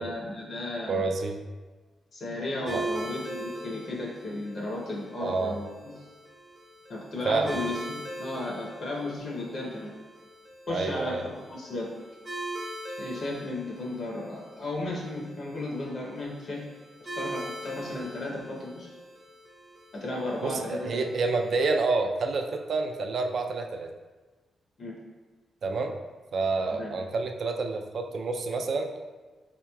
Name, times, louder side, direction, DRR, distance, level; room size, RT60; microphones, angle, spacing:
voice 1, 0.0-1.1 2.1-6.0 6.9-9.9 10.7-11.9 13.0-16.6 17.1-18.9 20.0-21.1 24.8-25.0 26.7-26.9, left 2 dB, 50° left, -3 dB, 0.6 m, -34 dB
voice 2, 0.9-1.4 2.7-2.8 5.2-5.6 7.2-7.6 10.7-11.2 20.4-23.9 25.6-26.0 26.3-28.9, right 3 dB, 50° right, 4 dB, 0.3 m, -28 dB
sound 1, 2.7-21.8, right 1 dB, 30° right, 0.7 m, -41 dB
4.6 x 2.9 x 2.2 m, 1.3 s
wide cardioid pair, 140°, 0 cm